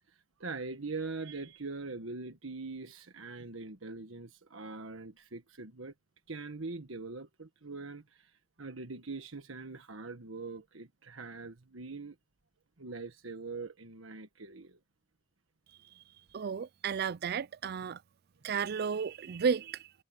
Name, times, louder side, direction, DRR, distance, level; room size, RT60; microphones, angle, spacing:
voice 1, 0.4-5.9 6.3-8.3 8.6-12.1 12.8-14.8, right 3 dB, 85° right, 1.4 m, -42 dB
voice 2, 16.3-18.0 18.4-19.9, right 6 dB, 50° right, 0.4 m, -33 dB
head